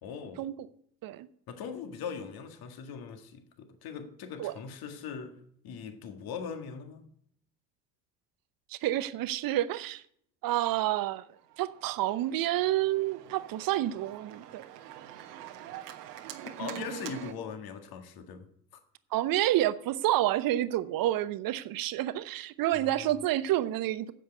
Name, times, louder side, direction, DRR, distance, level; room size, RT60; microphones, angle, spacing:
voice 1, 0.0-0.4 1.5-7.1 16.6-18.5 22.7-23.2, left 6 dB, 45° left, 1.9 m, -41 dB
voice 2, 8.7-10.0 10.4-11.2 11.6-14.6 19.1-24.1, right 14 dB, 45° right, 0.9 m, -29 dB
Organ, 11.5-17.3, right 12 dB, 70° right, 1.4 m, -44 dB
10.0 x 7.7 x 8.0 m
figure-of-eight pair, 60°, 49 cm